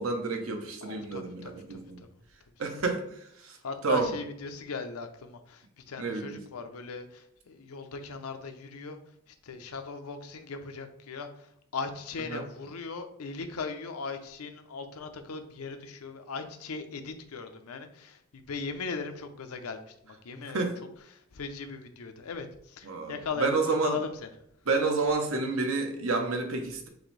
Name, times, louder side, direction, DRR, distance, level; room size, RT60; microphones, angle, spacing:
voice 1, 0.0-2.0 2.6-3.0 3.4-3.6 3.8-4.1 6.0-6.4 12.3-12.4 20.5-20.8 22.8-24.0 24.7-26.9, right 3 dB, 70° right, 4 dB, 0.8 m, -29 dB
voice 2, 0.8-1.8 3.6-9.0 9.3-20.7 21.3-24.3, left 4 dB, 90° left, 7 dB, 0.6 m, -38 dB
6.1 x 2.6 x 3.2 m, 0.73 s
head